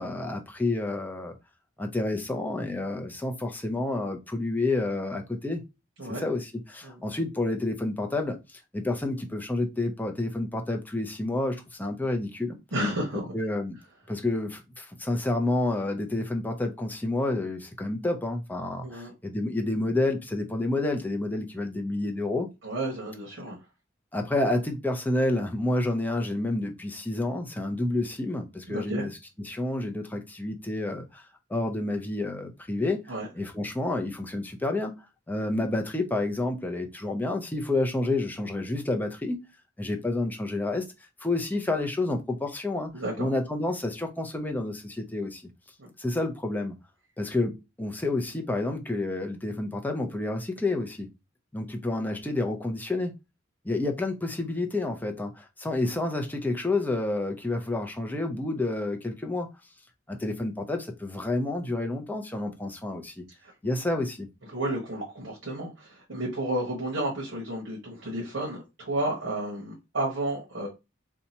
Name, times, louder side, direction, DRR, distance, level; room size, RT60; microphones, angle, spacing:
voice 1, 0.0-1.4 1.8-5.6 6.2-12.6 13.3-13.8 14.1-22.5 24.1-29.1 29.4-31.2 31.5-33.0 33.4-34.9 35.3-39.5 39.8-40.9 41.2-42.9 43.2-45.4 46.0-46.8 47.2-51.1 51.5-53.2 53.6-59.5 60.1-63.2 63.6-64.3, left 2 dB, 10° left, 0.5 m, -29 dB
voice 2, 12.7-13.3 18.8-19.1 22.6-23.6 28.7-29.1 33.1-33.3 42.9-43.3 45.8-45.9 60.1-60.2 63.4-63.5 64.4-70.7, right 1 dB, 70° right, 1.0 m, -32 dB
2.7 x 2.3 x 4.0 m
head